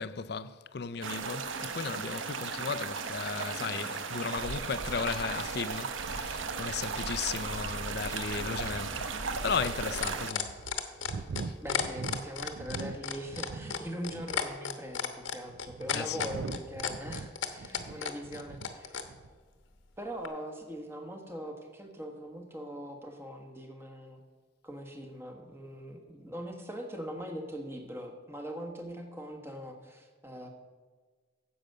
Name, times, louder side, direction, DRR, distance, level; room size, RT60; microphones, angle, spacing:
voice 1, 0.0-10.5 11.4-11.5 15.9-16.3, left 5 dB, 55° left, 0.5 m, -35 dB
sound 1, 1.0-10.3, right 5 dB, 85° right, 0.9 m, -36 dB
sound 2, 8.9-19.1 20.2-20.3, left 7 dB, 85° left, 1.1 m, -34 dB
sound 3, 8.9-9.0 9.7-9.8 10.4-13.8 14.1-14.6 15.3-18.7 19.0-19.4, right 4 dB, 60° right, 0.4 m, -42 dB
voice 2, 11.6-19.0 20.0-24.2 24.6-30.5, equal, 10° right, 1.3 m, -41 dB
10.0 x 7.9 x 6.6 m
head